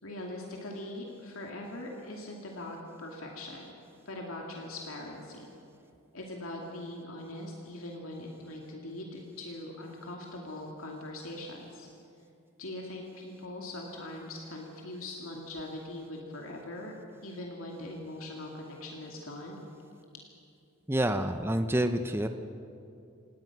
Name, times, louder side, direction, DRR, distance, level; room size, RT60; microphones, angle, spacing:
voice 1, 0.0-3.8 4.1-5.5 6.1-11.9 12.6-17.0 17.2-19.6, left 1 dB, 80° left, -1 dB, 2.5 m, -41 dB
voice 2, 20.9-22.3, right 1 dB, 10° right, 8 dB, 0.6 m, -28 dB
27.0 x 18.5 x 6.0 m, 2.6 s
head